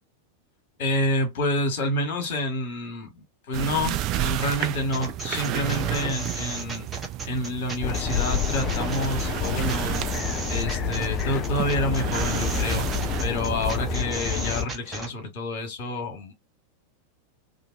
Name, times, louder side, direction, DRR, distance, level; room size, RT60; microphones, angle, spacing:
voice 1, 0.8-6.9 7.3-10.0 10.5-12.9 13.2-16.3, left 1 dB, 50° left, 1.2 m, -28 dB
sound 1, 3.5-14.0, right 14 dB, 40° right, 0.3 m, -32 dB
sound 2, 4.9-15.1, right 3 dB, 15° right, 0.8 m, -34 dB
sound 3, 7.8-14.7, left 7 dB, 35° left, 0.4 m, -29 dB
2.6 x 2.5 x 2.4 m
figure-of-eight pair, 90°, 0 cm